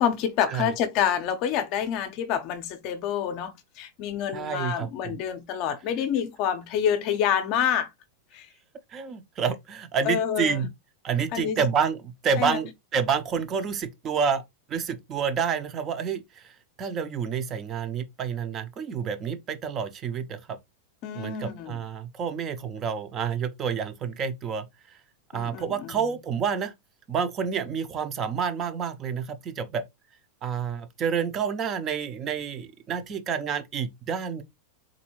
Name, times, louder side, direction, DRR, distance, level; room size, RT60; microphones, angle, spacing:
voice 1, 0.0-7.9 8.3-8.5 10.0-10.6 11.3-11.6 12.4-12.6 21.0-21.8 25.3-25.9, left 9 dB, 35° left, 0.6 m, -27 dB
voice 2, 4.3-5.2 8.9-10.7 11.0-14.4 14.7-20.6 21.1-25.0 25.3-26.7 27.1-29.8 30.4-34.4, right 6 dB, 20° right, 0.6 m, -29 dB
3.8 x 2.6 x 2.9 m
supercardioid pair, 165°, 0 cm